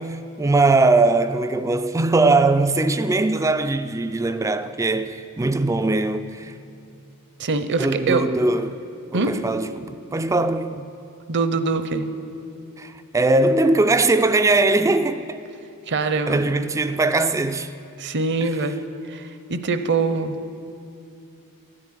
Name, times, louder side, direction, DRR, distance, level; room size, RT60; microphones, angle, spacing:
voice 1, 0.0-6.5 7.8-8.8 9.1-10.8 12.8-15.4 16.3-17.7, right 2 dB, 15° right, 0.3 m, -20 dB
voice 2, 7.4-8.2 9.1-9.3 11.3-12.1 15.9-16.4 18.0-20.4, right 3 dB, 55° right, 0.7 m, -23 dB
13.5 x 7.8 x 9.2 m
head